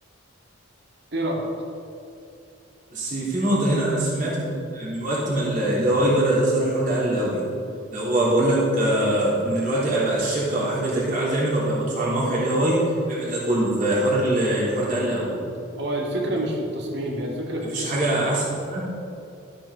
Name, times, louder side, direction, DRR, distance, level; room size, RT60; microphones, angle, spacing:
voice 1, 1.1-1.5 15.8-18.1, right 1 dB, 55° right, -1 dB, 2.4 m, -28 dB
voice 2, 2.9-7.4 7.9-15.4 17.7-18.8, right 1 dB, 40° right, -8 dB, 3.4 m, -23 dB
13.5 x 9.0 x 4.9 m, 2.6 s
head